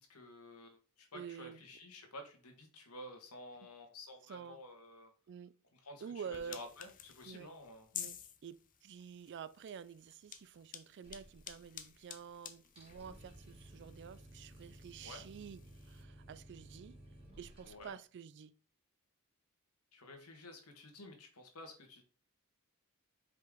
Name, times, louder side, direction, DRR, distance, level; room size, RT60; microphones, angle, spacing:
voice 1, 0.0-5.1 5.8-6.0 6.3-7.9 15.0-15.2 17.6-18.0 19.9-22.0, left 2 dB, 85° left, 1.7 m, -52 dB
voice 2, 1.1-1.6 4.3-4.6 5.3-5.5 6.0-6.6 7.3-7.5 7.9-17.0 17.4-18.5, right 7 dB, 55° right, 0.3 m, -49 dB
sound 1, 6.3-16.0, left 9 dB, 40° left, 0.7 m, -52 dB
sound 2, 11.0-12.0 12.3-12.4 12.6-17.9, right 1 dB, 25° right, 2.7 m, -56 dB
5.5 x 5.1 x 3.7 m
head